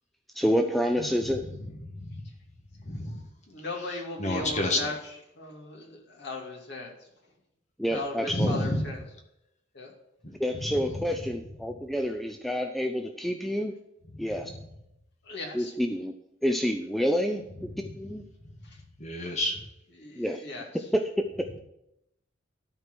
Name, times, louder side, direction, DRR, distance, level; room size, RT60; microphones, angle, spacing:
voice 1, 0.3-1.5 7.8-8.7 10.4-13.7 14.2-14.5 15.5-16.1 16.4-18.2 20.2-20.4 20.9-21.6, equal, ahead, 4 dB, 0.5 m, -28 dB
voice 2, 2.8-3.2 4.2-4.9 7.9-8.0 8.3-8.9 19.0-19.6, left 1 dB, 35° left, 2 dB, 1.5 m, -28 dB
voice 3, 3.5-6.9 7.9-9.0 9.7-9.9 15.3-15.7 20.0-20.6, left 2 dB, 60° left, 0 dB, 2.2 m, -37 dB
13.0 x 4.6 x 6.1 m, 0.82 s
head